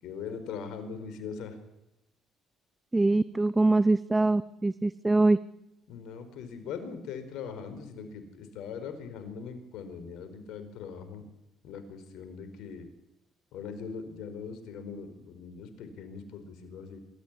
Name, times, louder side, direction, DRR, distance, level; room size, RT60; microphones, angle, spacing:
voice 1, 0.0-1.6 5.9-11.2 11.6-12.9 13.5-17.0, left 6 dB, 70° left, 9 dB, 4.6 m, -41 dB
voice 2, 2.9-5.4, right 2 dB, 15° right, 17 dB, 0.8 m, -23 dB
25.0 x 14.0 x 9.8 m, 0.87 s
supercardioid pair, 70°, 0 cm